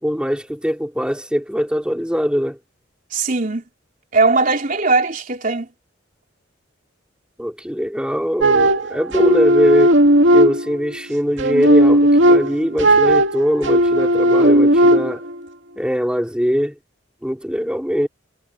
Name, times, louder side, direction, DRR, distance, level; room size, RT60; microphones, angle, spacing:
voice 1, 0.0-2.6 7.4-10.0 10.3-15.2 15.8-16.8 17.2-18.1, equal, 5° right, 3.8 m, -21 dB
voice 2, 3.1-3.6 4.1-5.7, right 3 dB, 45° right, 3.7 m, -19 dB
sound 1, 8.4-10.9 11.4-15.3, right 1 dB, 80° right, 2.3 m, -14 dB
head